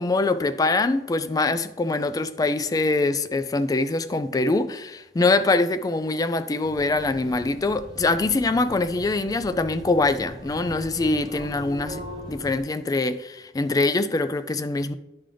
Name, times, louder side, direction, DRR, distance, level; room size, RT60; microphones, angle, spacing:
voice 1, 0.0-14.9, left 3 dB, 20° left, 0.3 m, -24 dB
sound 1, 6.6-12.6, equal, 25° right, 0.9 m, -40 dB
10.5 x 3.8 x 3.3 m
head